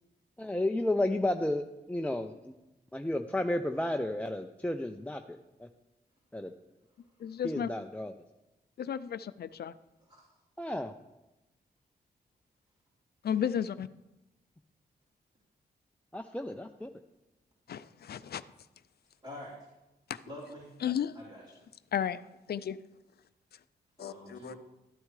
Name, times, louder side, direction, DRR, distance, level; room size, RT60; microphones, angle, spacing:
voice 1, 0.4-2.5 2.9-5.4 6.3-6.5 7.4-8.1 10.6-10.9 16.1-16.9, left 1 dB, 10° left, 5 dB, 0.5 m, -32 dB
voice 2, 7.2-7.7 8.8-9.7 13.2-13.9 17.7-18.4 20.1-20.2 20.8-21.1 21.9-22.2 22.5-22.8 24.0-24.5, left 9 dB, 65° left, 15 dB, 0.4 m, -33 dB
voice 3, 19.2-19.6 20.2-20.7 21.1-21.6 24.0-24.6, left 1 dB, 30° right, -10 dB, 3.6 m, -46 dB
13.0 x 8.7 x 3.2 m, 0.98 s
cardioid pair, 65°, 18 cm